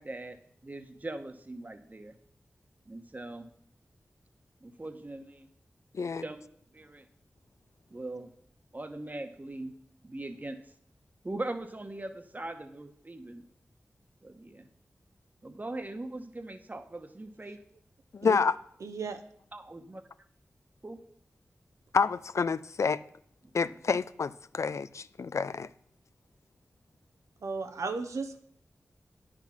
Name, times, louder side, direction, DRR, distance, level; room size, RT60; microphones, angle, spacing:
voice 1, 0.0-2.1 2.9-3.5 4.6-5.5 6.0-6.4 6.7-7.1 7.9-8.3 8.7-9.7 10.0-10.6 11.2-13.4 14.2-14.7 15.4-17.6 19.5-20.0 20.8-21.0 23.4-23.5, right 2 dB, 30° right, 1.1 m, -41 dB
voice 2, 18.1-18.6 21.9-23.0 23.5-25.7, left 5 dB, 70° left, 0.4 m, -28 dB
voice 3, 18.8-19.2 27.4-28.4, right 4 dB, 85° right, 0.8 m, -35 dB
9.8 x 6.3 x 5.8 m
cardioid pair, 50°, 5 cm